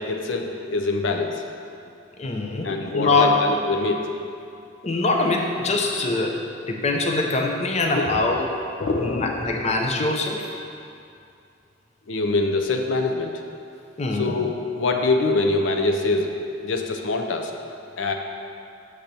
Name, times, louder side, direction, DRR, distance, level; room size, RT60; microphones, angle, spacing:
voice 1, 0.0-1.4 2.6-4.1 7.9-8.1 8.8-9.4 12.1-13.4 14.2-16.3 16.6-17.5 18.0-18.1, left 3 dB, 80° left, 4 dB, 0.6 m, -24 dB
voice 2, 2.2-3.4 4.8-6.3 6.7-8.5 9.0-10.5 14.0-14.4, left 3 dB, 35° left, 2 dB, 0.6 m, -23 dB
6.6 x 4.4 x 6.7 m, 2.5 s
head